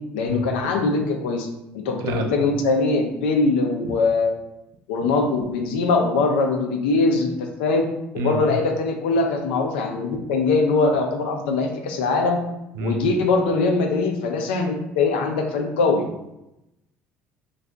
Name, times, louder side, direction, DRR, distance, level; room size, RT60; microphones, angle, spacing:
voice 1, 0.1-1.5 1.7-4.3 4.9-12.4 12.8-16.0, left 3 dB, 85° left, 3 dB, 0.5 m, -22 dB
voice 2, 2.0-2.3 8.2-8.4 12.8-12.9, right 1 dB, 70° right, 4 dB, 0.5 m, -26 dB
2.7 x 2.3 x 3.4 m, 0.89 s
hypercardioid pair, 65°, 6 cm